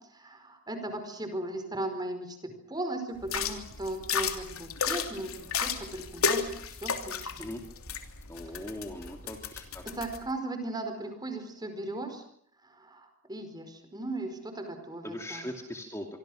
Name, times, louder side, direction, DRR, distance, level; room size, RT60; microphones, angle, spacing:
voice 1, 0.1-7.5 9.8-12.2 12.6-15.5, right 2 dB, 20° right, 7 dB, 4.8 m, -37 dB
sound 1, 3.2-10.2, left 6 dB, 80° left, 3.0 m, -33 dB
voice 2, 8.3-9.9 15.0-16.1, left 1 dB, 15° left, 3 dB, 2.5 m, -40 dB
26.0 x 25.0 x 6.4 m, 0.68 s
head